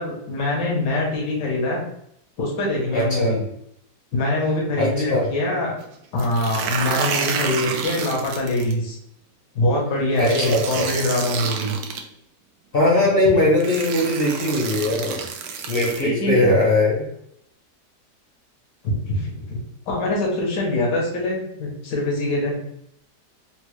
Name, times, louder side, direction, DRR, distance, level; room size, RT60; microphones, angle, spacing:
voice 1, 0.0-1.8 2.4-3.4 4.1-5.8 6.1-9.0 9.5-11.7 16.0-16.6 18.8-19.6 19.9-22.6, left 1 dB, 80° left, -2 dB, 1.7 m, -23 dB
voice 2, 2.9-3.4 4.8-5.3 10.2-10.9 12.7-15.2 15.7-17.1, left 1 dB, 50° left, -3 dB, 0.7 m, -20 dB
sound 1, 6.2-8.7 10.2-12.0 13.0-13.1 13.6-16.0, right 6 dB, 70° right, 1.0 m, -29 dB
4.3 x 2.1 x 3.1 m, 0.73 s
omnidirectional pair, 1.9 m